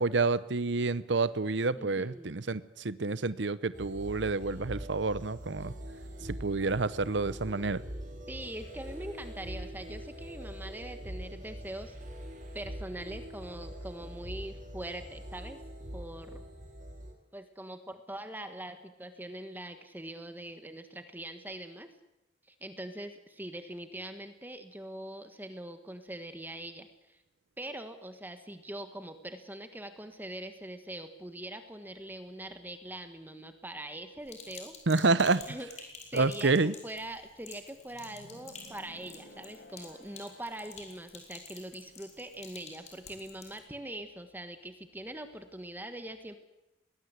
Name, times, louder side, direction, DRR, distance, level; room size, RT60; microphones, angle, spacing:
voice 1, 0.0-5.7 6.4-7.8 34.9-35.4 36.1-36.7, right 3 dB, 70° right, 16 dB, 0.8 m, -28 dB
voice 2, 1.7-2.3 8.3-11.9 12.5-15.6 15.9-16.4 17.3-21.9 22.5-27.2 27.6-34.7 35.5-46.3, right 1 dB, 10° right, 8 dB, 1.4 m, -43 dB
sound 1, 3.7-17.1, equal, 45° right, 4.0 m, -43 dB
Sink (filling or washing), 34.3-43.6, left 5 dB, 40° left, 5.1 m, -51 dB
sound 2, 37.9-40.9, left 1 dB, 60° left, 6.5 m, -54 dB
21.5 x 19.5 x 8.1 m, 0.93 s
head